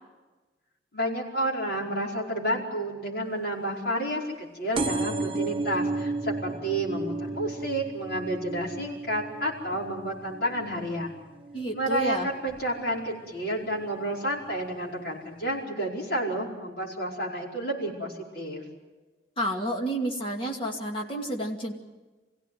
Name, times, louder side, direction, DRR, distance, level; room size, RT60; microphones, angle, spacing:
voice 1, 0.9-11.2 11.7-18.6, right 1 dB, 60° left, -3 dB, 5.0 m, -30 dB
sound 1, 4.7-12.0 12.5-12.9 13.8-13.9 14.1-14.2 14.4-14.5, right 3 dB, 30° right, 0.7 m, -33 dB
voice 2, 11.5-12.3 19.4-21.7, equal, 30° left, 1 dB, 2.5 m, -30 dB
25.0 x 16.5 x 9.4 m, 1.2 s
head